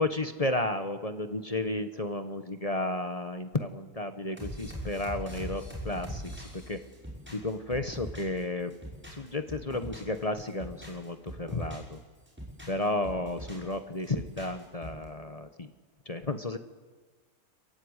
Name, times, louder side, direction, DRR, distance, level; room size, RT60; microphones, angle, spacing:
voice 1, 0.0-6.2 6.5-6.8 7.3-8.7 9.1-12.0 12.7-15.7 16.0-16.6, left 2 dB, 25° left, 9 dB, 1.1 m, -32 dB
sound 1, 4.4-8.4 8.7-10.2 10.5-11.9 12.3-13.7 14.0-15.0, equal, 5° right, 6.1 m, -41 dB
27.0 x 15.5 x 9.8 m, 1.4 s
omnidirectional pair, 1.6 m